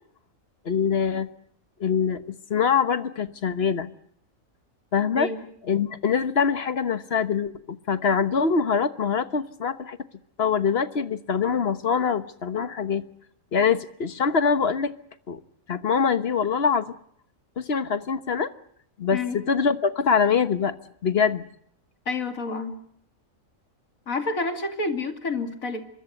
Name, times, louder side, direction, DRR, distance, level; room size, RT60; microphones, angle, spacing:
voice 1, 0.6-1.3 1.8-2.2 2.5-3.9 4.9-5.3 5.7-10.0 10.4-13.0 13.5-14.9 15.3-15.4 15.7-16.9 17.6-18.5 19.0-20.8 21.0-21.4, left 6 dB, 50° left, 12 dB, 1.4 m, -24 dB
voice 2, 22.1-22.8 24.1-25.8, left 3 dB, 80° left, 6 dB, 3.0 m, -29 dB
24.5 x 22.5 x 7.9 m, 0.68 s
omnidirectional pair, 1.4 m